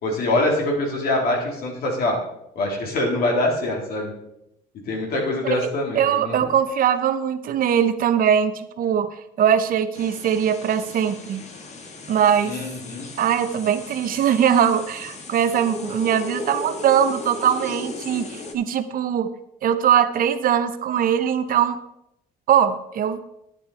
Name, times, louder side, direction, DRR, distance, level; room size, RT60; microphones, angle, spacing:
voice 1, 0.0-2.2 2.5-4.1 4.9-6.3 12.4-13.1, left 1 dB, 65° left, -1 dB, 3.4 m, -24 dB
voice 2, 5.6-11.5 12.1-12.6 13.2-19.3 19.6-21.8 22.5-23.2, right 9 dB, 55° right, 10 dB, 0.9 m, -21 dB
sound 1, 9.9-18.5, left 2 dB, 40° left, 1.5 m, -36 dB
10.0 x 9.5 x 4.2 m, 0.82 s
cardioid pair, 110°, 17 cm